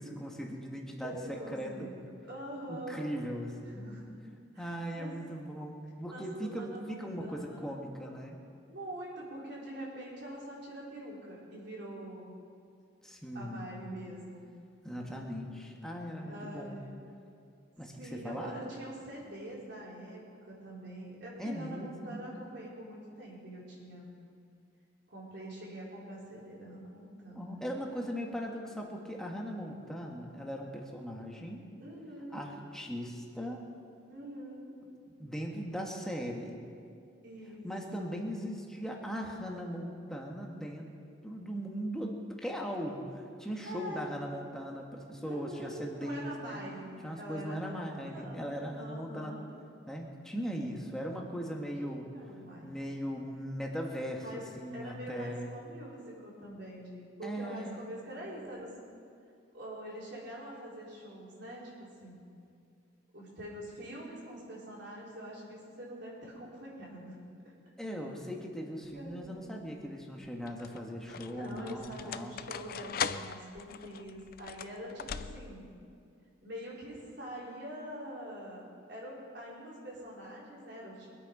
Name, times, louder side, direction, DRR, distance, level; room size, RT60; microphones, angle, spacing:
voice 1, 0.0-2.0 2.7-3.9 4.6-8.4 13.0-13.7 14.8-16.8 17.8-18.6 21.4-22.3 27.3-31.7 32.3-33.7 35.2-36.5 37.6-40.9 41.2-46.6 47.0-49.3 49.9-52.1 52.6-55.5 57.2-57.9 67.8-72.4, equal, 5° left, 0 dB, 1.6 m, -39 dB
voice 2, 1.0-1.9 2.3-3.1 3.6-4.1 4.5-5.2 6.1-7.7 8.7-12.3 13.3-14.4 16.2-17.0 18.0-24.1 25.1-27.8 28.2-28.3 31.8-32.5 34.1-34.7 37.2-37.6 38.0-38.2 43.6-44.0 45.2-49.5 51.8-52.7 54.2-54.4 54.7-58.7 59.5-62.2 63.1-67.3 68.9-69.5 71.3-75.7 76.4-78.6 78.9-81.1, right 1 dB, 60° right, -5 dB, 4.4 m, -45 dB
sound 1, 68.9-69.4 70.2-75.7, left 7 dB, 50° left, 0.4 m, -40 dB
23.5 x 8.6 x 5.4 m, 2.4 s
head